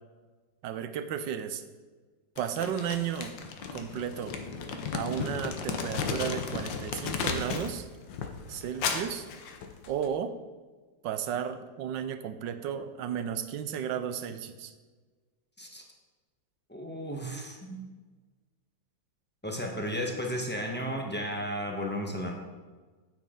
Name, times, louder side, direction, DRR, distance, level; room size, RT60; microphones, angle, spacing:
voice 1, 0.6-1.6 2.4-3.3 3.7-4.4 4.9-7.9 8.5-9.3 9.9-10.3 11.0-14.7, right 8 dB, 80° right, 10 dB, 1.3 m, -33 dB
Crumpling crinkling, 2.4-7.8 8.1-10.1, left 6 dB, 80° left, 1.6 m, -34 dB
voice 2, 16.7-17.9 19.4-22.3, equal, 10° left, 0 dB, 0.8 m, -34 dB
9.2 x 8.9 x 3.8 m, 1.4 s
omnidirectional pair, 2.0 m